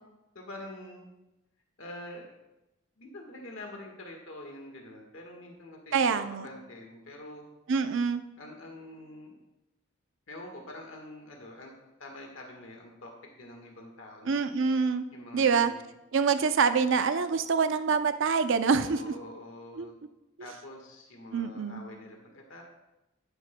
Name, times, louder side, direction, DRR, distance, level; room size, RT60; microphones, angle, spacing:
voice 1, 0.3-1.1 1.8-2.3 3.0-7.5 8.4-9.4 10.3-11.7 12.0-13.1 13.4-14.4 15.1-15.8 18.7-19.9 20.4-22.6, left 1 dB, 70° left, 1 dB, 1.5 m, -45 dB
voice 2, 5.9-6.4 7.7-8.2 14.3-15.0 15.3-15.7 16.1-19.1 19.8-19.9 21.3-21.8, right 5 dB, 65° right, 10 dB, 0.5 m, -25 dB
11.5 x 9.8 x 2.2 m, 0.95 s
head